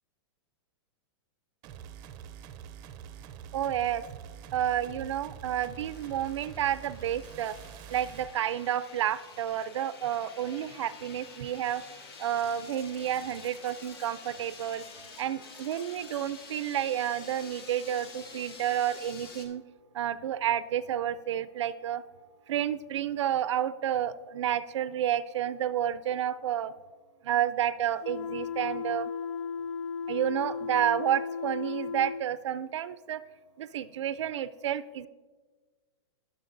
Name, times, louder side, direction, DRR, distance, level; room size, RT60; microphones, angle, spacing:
sound 1, 1.6-8.3, right 9 dB, 30° right, 0.5 m, -46 dB
voice 1, 3.5-4.0 4.5-7.6 7.9-11.8 12.2-14.8 15.2-19.6 19.9-22.0 22.5-26.7 27.2-29.1 30.1-33.2 33.6-35.1, right 10 dB, 85° right, 14 dB, 0.4 m, -30 dB
sound 2, 5.7-19.5, left 4 dB, 60° left, 1.5 m, -49 dB
sound 3, 28.0-32.3, left 6 dB, 80° left, 0.4 m, -35 dB
17.5 x 6.7 x 2.5 m, 1.4 s
hypercardioid pair, 150°, 15 cm